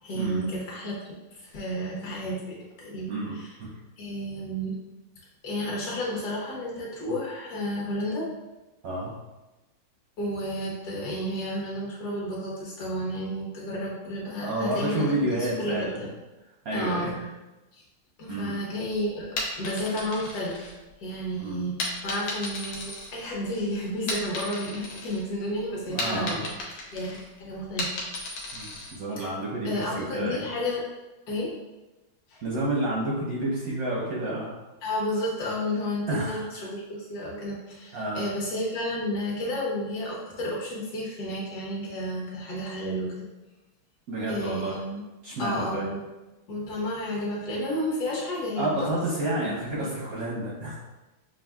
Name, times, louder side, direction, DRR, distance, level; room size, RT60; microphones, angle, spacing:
voice 1, 0.0-1.0 1.3-3.5 4.0-4.7 5.4-8.3 10.2-16.1 16.7-17.1 17.7-17.8 18.2-19.3 19.6-26.4 26.9-27.9 29.2-29.3 29.6-30.8 31.3-31.5 32.3-32.4 34.8-43.3 44.3-45.0 45.4-46.0 46.5-48.9 49.3-49.6, equal, 55° left, -4 dB, 1.4 m, -31 dB
voice 2, 3.1-3.7 8.8-9.1 14.4-16.0 16.6-17.1 18.3-18.6 21.4-21.6 25.9-26.4 28.5-30.4 32.4-34.5 36.1-36.5 37.9-38.3 44.1-44.8 45.2-45.9 48.6-50.8, right 1 dB, 65° right, -5 dB, 0.9 m, -30 dB
sound 1, 19.2-21.2 21.8-23.6 23.9-25.2 25.6-29.0, left 2 dB, 80° left, 1.7 m, -34 dB
6.1 x 2.5 x 2.3 m, 1.1 s
omnidirectional pair, 2.3 m